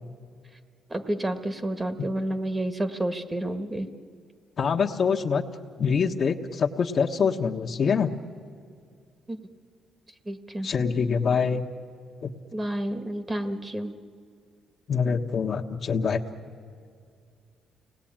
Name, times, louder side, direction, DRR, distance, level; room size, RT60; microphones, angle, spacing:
voice 1, 0.9-3.9 9.3-9.4 10.2-10.7 12.5-13.9, right 1 dB, 20° right, 9 dB, 1.6 m, -30 dB
voice 2, 4.6-5.4 5.8-8.1 10.6-11.6 12.2-12.3 14.9-16.2, left 6 dB, 50° left, 2 dB, 1.3 m, -25 dB
30.0 x 19.0 x 8.9 m, 2.3 s
cardioid pair, 90°, 0 cm